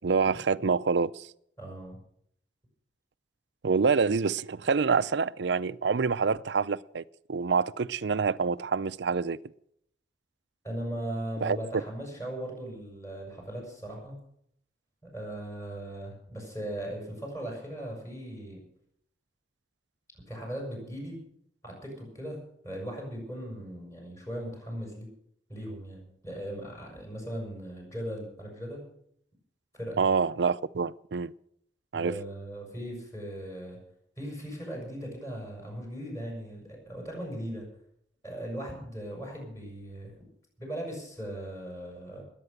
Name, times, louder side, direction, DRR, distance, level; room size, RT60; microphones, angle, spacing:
voice 1, 0.0-1.3 3.6-7.0 7.3-9.4 11.4-11.6 30.0-31.3 31.9-32.2, right 5 dB, 65° right, 0.5 m, -26 dB
voice 2, 1.6-2.0 10.6-14.2 15.1-18.6 20.3-21.2 21.6-22.4 22.6-25.1 25.5-28.8 29.7-30.0 31.9-33.8 34.2-37.7 38.2-40.1 40.6-42.2, right 1 dB, 15° left, 6.7 m, -38 dB
20.5 x 9.0 x 6.6 m
head